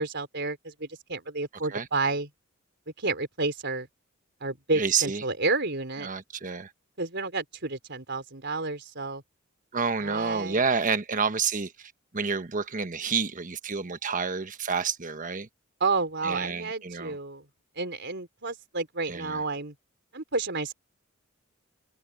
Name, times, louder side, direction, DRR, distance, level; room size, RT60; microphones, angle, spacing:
voice 1, 0.0-2.3 3.0-3.9 4.4-6.1 7.0-9.2 10.0-10.6 15.8-17.4 17.8-19.7 20.1-20.7, right 3 dB, 55° right, 4.1 m, -30 dB
voice 2, 4.7-5.2 6.0-6.7 9.7-15.5 16.2-17.2 19.0-19.4, right 5 dB, 40° right, 1.2 m, -29 dB
head